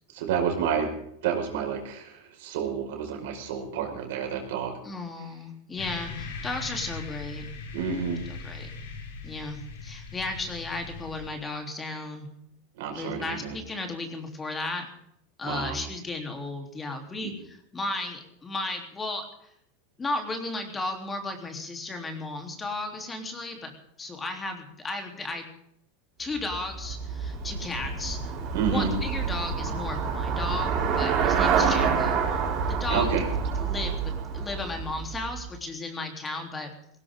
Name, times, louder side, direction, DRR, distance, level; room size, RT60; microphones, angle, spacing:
voice 1, 0.1-0.9 1.2-4.8 7.7-8.2 12.7-13.6 15.4-15.8 17.2-17.3 28.5-28.9 32.9-33.2, right 7 dB, 70° right, 3 dB, 5.2 m, -29 dB
voice 2, 4.8-7.5 8.4-8.7 9.2-12.3 12.9-14.9 15.4-19.2 20.0-23.7 24.0-25.5 26.2-28.3 28.6-32.2 32.7-33.1 33.6-34.0 34.3-36.7, left 2 dB, 15° left, 4 dB, 3.5 m, -34 dB
sound 1, 5.8-11.3, left 4 dB, 80° left, 6.8 m, -40 dB
Traffic noise roadway noise / Bicycle, 26.4-35.6, right 6 dB, 45° right, 6.8 m, -28 dB
18.0 x 18.0 x 3.8 m, 0.72 s
supercardioid pair, 125°, 0 cm